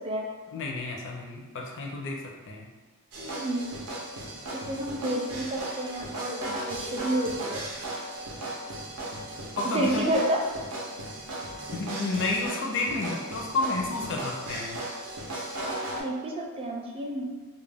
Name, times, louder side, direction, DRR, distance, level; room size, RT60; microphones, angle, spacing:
voice 1, 0.5-2.7 9.6-10.1 11.7-14.8, left 3 dB, 55° left, 0 dB, 0.4 m, -31 dB
sound 1, 3.1-16.0, right 1 dB, 85° right, 0.6 m, -36 dB
voice 2, 3.2-3.7 4.5-7.7 9.6-10.4 16.0-17.3, right 1 dB, 25° right, 0 dB, 0.3 m, -30 dB
2.4 x 2.1 x 3.3 m, 1.4 s
head